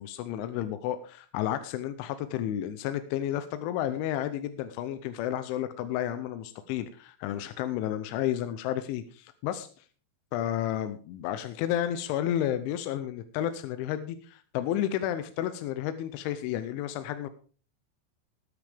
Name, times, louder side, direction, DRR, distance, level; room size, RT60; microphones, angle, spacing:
voice 1, 0.0-9.9 10.3-17.3, left 11 dB, 80° left, 10 dB, 3.0 m, -31 dB
19.5 x 8.4 x 3.5 m, 0.39 s
omnidirectional pair, 5.7 m